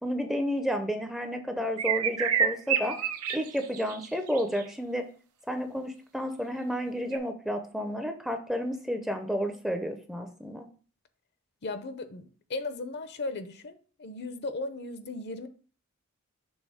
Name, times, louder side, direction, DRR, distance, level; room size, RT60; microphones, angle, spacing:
voice 1, 0.0-3.0 3.3-5.1 5.5-10.6, equal, ahead, 6 dB, 0.6 m, -31 dB
sound 1, 1.8-4.6 7.1-7.2, right 8 dB, 85° right, 0.7 m, -28 dB
voice 2, 11.6-15.5, left 2 dB, 50° left, 10 dB, 0.7 m, -36 dB
6.3 x 3.5 x 4.9 m, 0.41 s
head